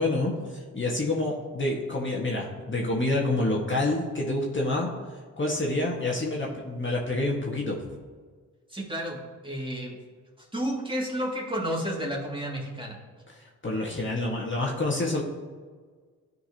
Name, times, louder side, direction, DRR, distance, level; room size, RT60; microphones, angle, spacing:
voice 1, 0.0-4.9 5.4-7.8 13.3-15.2, left 2 dB, 30° left, -2 dB, 1.8 m, -28 dB
voice 2, 8.7-10.0 10.4-13.0, equal, 15° right, -3 dB, 2.4 m, -31 dB
13.0 x 4.6 x 2.9 m, 1.5 s
hypercardioid pair, 45°, 38 cm